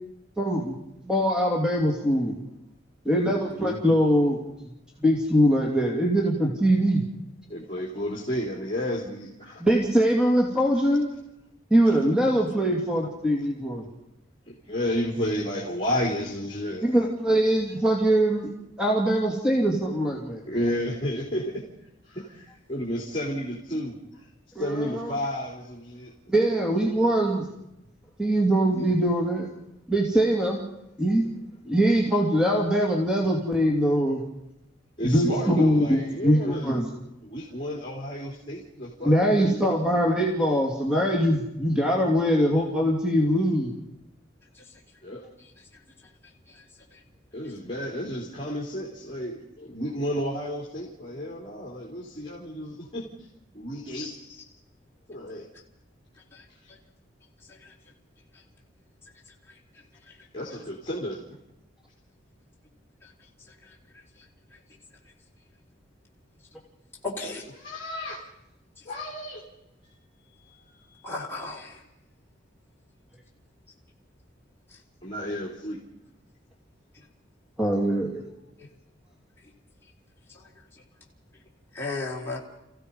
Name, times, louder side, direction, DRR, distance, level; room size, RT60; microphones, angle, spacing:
voice 1, 0.4-0.7 1.0-2.4 3.0-4.4 5.0-7.0 9.6-11.1 11.7-13.9 16.8-18.5 18.8-20.4 24.5-25.1 26.3-27.4 28.2-29.5 29.9-30.6 31.0-31.3 31.6-34.2 35.0-36.9 39.0-43.7 77.6-78.3, equal, 5° right, -1 dB, 2.7 m, -22 dB
voice 2, 3.3-3.8 7.5-9.6 14.5-17.1 20.5-21.6 22.1-24.2 24.6-26.1 35.0-36.8 37.2-39.9 45.0-45.2 47.3-53.1 53.5-54.2 55.1-55.5 60.3-61.2 67.6-68.2 68.9-69.4 69.8-69.9 70.5-70.8 75.0-75.8, equal, 30° left, -3 dB, 3.7 m, -32 dB
voice 3, 67.0-67.4 71.0-71.8 81.7-82.4, left 3 dB, 15° left, -4 dB, 3.9 m, -33 dB
29.5 x 16.0 x 5.5 m, 0.88 s
head